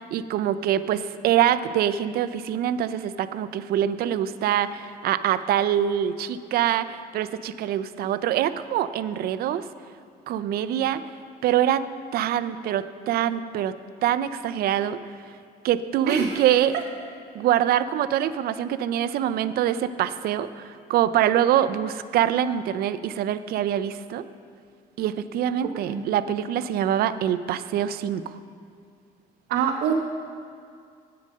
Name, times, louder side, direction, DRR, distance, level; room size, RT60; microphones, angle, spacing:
voice 1, 0.1-9.7 10.3-11.0 11.4-11.8 12.1-13.7 14.0-15.0 15.6-16.7 17.3-24.2 25.0-28.4, right 10 dB, 65° right, 13 dB, 0.5 m, -24 dB
voice 2, 16.1-16.4 25.6-26.0 29.5-29.9, right 7 dB, 80° right, 0 dB, 0.8 m, -25 dB
9.1 x 8.7 x 6.5 m, 2.3 s
cardioid pair, 110°, 17 cm